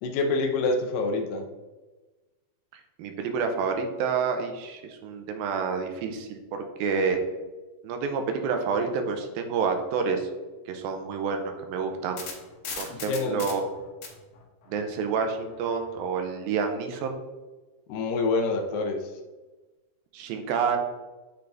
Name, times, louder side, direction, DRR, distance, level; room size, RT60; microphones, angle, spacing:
voice 1, 0.0-1.5 12.9-13.5 17.9-19.0, left 3 dB, 80° left, 4 dB, 2.3 m, -26 dB
voice 2, 3.0-7.2 7.8-10.3 10.7-12.2 12.8-13.7 14.7-17.2 20.1-20.8, right 5 dB, 85° right, 5 dB, 2.5 m, -28 dB
sound 1, 11.8-16.0, left 6 dB, 65° left, 1.7 m, -40 dB
9.0 x 3.9 x 3.4 m, 1.2 s
omnidirectional pair, 4.1 m